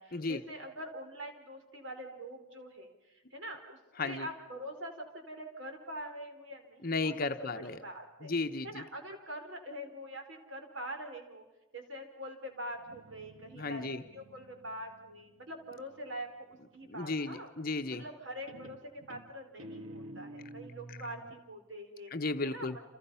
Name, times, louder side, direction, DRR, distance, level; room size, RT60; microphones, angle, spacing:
voice 1, 0.0-3.8 4.0-7.1 7.4-8.3 8.6-11.4 11.7-17.5 17.9-22.1 22.4-22.8, equal, 60° right, 4 dB, 4.6 m, -44 dB
voice 2, 6.8-7.8 8.2-8.8 13.5-14.0 16.9-18.0 22.1-22.8, left 3 dB, 45° left, 7 dB, 0.9 m, -34 dB
Guitar, 12.7-16.3 17.8-18.2 18.5-21.4, right 1 dB, 80° right, 1.6 m, -51 dB
30.0 x 28.0 x 5.7 m, 1.0 s
head